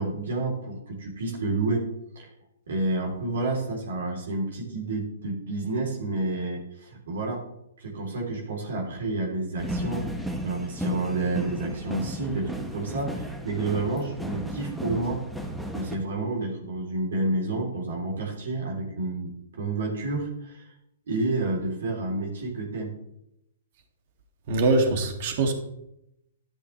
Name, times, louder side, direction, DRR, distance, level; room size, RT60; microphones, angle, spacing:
voice 1, 0.0-1.8 2.1-2.3 2.7-7.4 7.8-10.1 10.4-15.2 15.7-20.7 21.1-22.9, right 2 dB, 70° right, -1 dB, 3.3 m, -29 dB
sound 1, 9.6-16.0, equal, 5° right, 1.2 m, -34 dB
voice 2, 24.5-25.5, right 2 dB, 50° right, 5 dB, 2.3 m, -23 dB
12.0 x 11.0 x 3.3 m, 0.82 s
hypercardioid pair, 125°, 0 cm